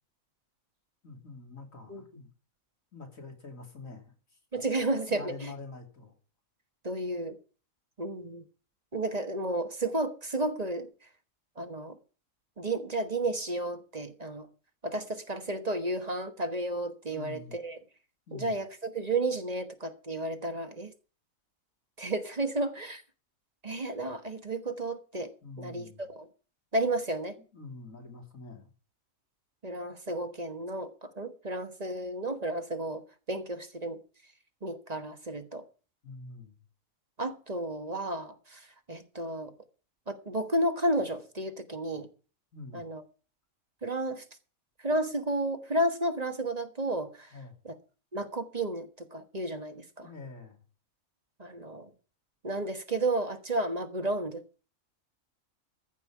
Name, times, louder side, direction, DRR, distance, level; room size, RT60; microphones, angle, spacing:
voice 1, 1.0-2.3 2.9-4.4 5.1-6.1 17.1-17.6 18.3-18.5 25.4-26.0 27.5-28.7 36.0-36.6 42.5-42.8 47.3-47.6 50.0-50.6, left 3 dB, 75° left, 3.5 m, -45 dB
voice 2, 4.5-5.5 6.8-7.4 8.0-8.4 8.9-10.9 11.6-12.0 12.6-14.5 14.8-17.8 18.3-20.9 22.0-23.0 23.6-26.3 26.7-27.4 29.6-34.0 34.6-35.7 37.2-39.5 40.1-42.1 42.7-43.0 43.8-44.2 44.8-47.3 47.6-47.8 48.1-50.1 51.4-51.9 52.4-54.4, right 1 dB, 30° right, 1.3 m, -32 dB
14.5 x 5.5 x 8.5 m
omnidirectional pair, 1.4 m